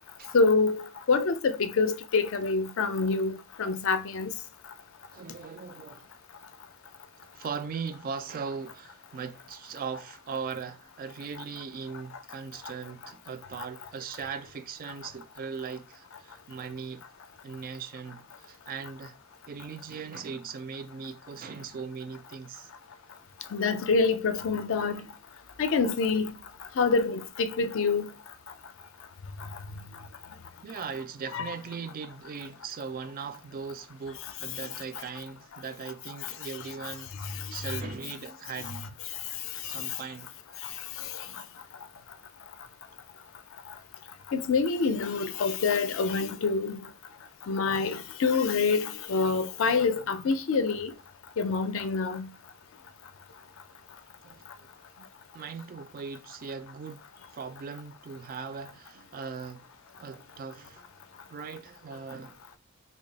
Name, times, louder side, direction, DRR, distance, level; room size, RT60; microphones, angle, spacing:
voice 1, 0.3-4.3 13.6-13.7 23.5-25.1 25.6-26.3 26.8-28.1 31.3-31.5 36.6-36.9 37.2-37.8 38.6-38.7 39.6-40.0 40.6-40.7 41.0-41.3 44.3-46.8 47.5-50.9 51.4-52.3, left 4 dB, 60° left, 0.4 m, -27 dB
voice 2, 5.1-6.1 7.2-17.0 17.4-19.2 19.5-22.7 30.6-38.9 39.6-40.3 54.2-54.7 55.0-55.1 55.3-57.0 57.3-59.7 60.0-60.9 61.3-62.4, right 5 dB, 40° right, 0.3 m, -39 dB
3.3 x 2.3 x 3.9 m
head